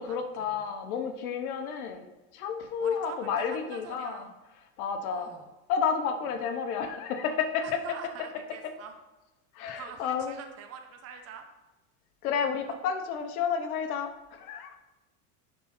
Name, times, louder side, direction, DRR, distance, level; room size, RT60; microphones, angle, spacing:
voice 1, 0.0-2.0 2.3-4.2 4.8-5.3 5.7-7.8 9.5-10.4 12.2-14.7, left 6 dB, 80° left, 6 dB, 1.0 m, -31 dB
voice 2, 2.8-4.4 5.0-5.5 7.6-8.9 9.7-11.5 12.7-12.8, right 7 dB, 35° right, 5 dB, 0.9 m, -45 dB
10.5 x 3.9 x 4.3 m, 1.1 s
supercardioid pair, 120°, 43 cm